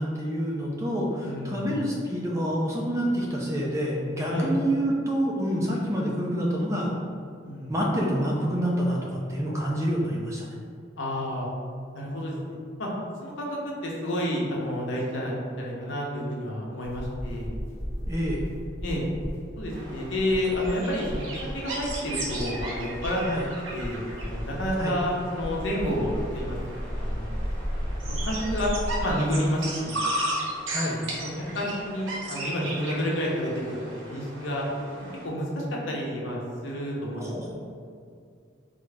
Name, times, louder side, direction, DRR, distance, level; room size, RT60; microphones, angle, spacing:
voice 1, 0.0-6.9 7.7-10.5 18.1-18.4 23.3-23.5 24.8-25.0 30.7-31.0 37.1-37.5, equal, 15° right, -3 dB, 0.4 m, -27 dB
voice 2, 1.2-1.7 4.3-4.5 7.4-7.7 11.0-11.5 11.9-12.9 13.2-17.5 18.8-19.0 19.6-23.2 23.7-27.5 28.2-28.7 29.0-30.0 31.5-34.6 35.2-37.5, equal, 75° left, -3 dB, 0.7 m, -30 dB
sound 1, 16.8-29.1, equal, 60° right, 1.5 m, -35 dB
sound 2, 19.7-35.3, right 1 dB, 85° right, 0.7 m, -36 dB
3.5 x 2.0 x 3.3 m, 2.3 s
head